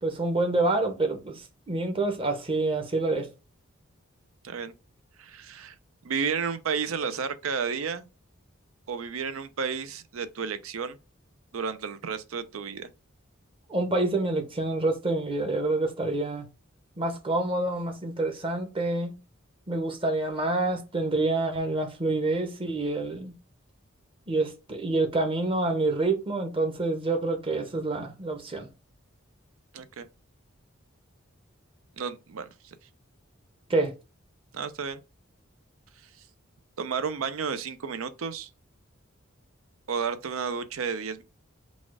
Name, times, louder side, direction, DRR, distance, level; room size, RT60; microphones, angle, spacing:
voice 1, 0.0-3.3 13.7-16.5 17.0-19.1 19.7-23.3 24.3-28.7 33.7-33.9, right 2 dB, 25° right, 0.8 m, -27 dB
voice 2, 5.2-5.7 6.0-8.1 8.9-11.0 11.5-12.9 29.7-30.1 32.0-32.7 34.5-35.0 36.8-38.5 39.9-41.2, right 6 dB, 85° right, 0.5 m, -32 dB
4.1 x 2.4 x 4.7 m
head